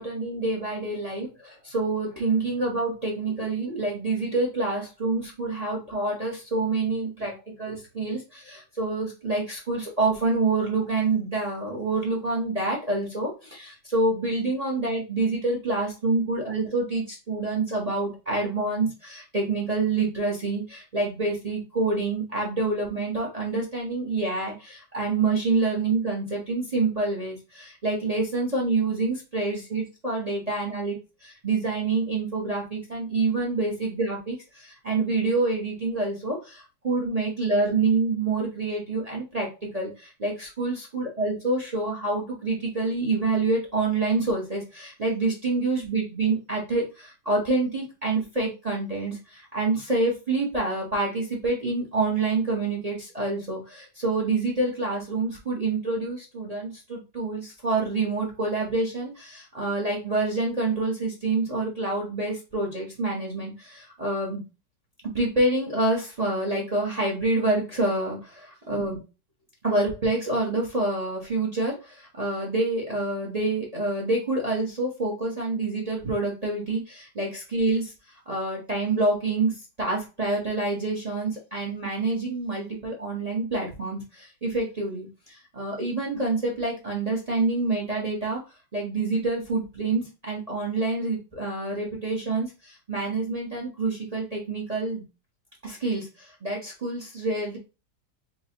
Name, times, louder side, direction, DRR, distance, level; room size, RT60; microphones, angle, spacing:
voice 1, 0.0-31.0 31.2-64.4 65.0-69.0 69.6-77.9 78.3-88.4 88.7-95.0 95.6-97.6, right 3 dB, 30° right, -1 dB, 0.7 m, -27 dB
5.7 x 2.2 x 2.8 m, 0.29 s
omnidirectional pair, 2.0 m